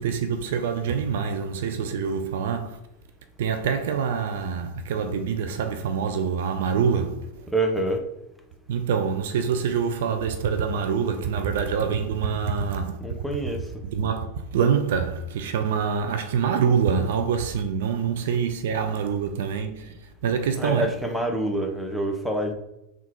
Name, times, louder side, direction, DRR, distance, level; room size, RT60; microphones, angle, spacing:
voice 1, 0.0-2.8 3.4-7.3 8.7-13.0 13.8-19.9 20.2-20.9, right 6 dB, 55° right, 0.4 m, -25 dB
voice 2, 7.5-8.0 13.0-13.6 20.6-22.5, right 1 dB, ahead, 0.6 m, -26 dB
3.6 x 2.3 x 4.4 m
figure-of-eight pair, 90°, 0 cm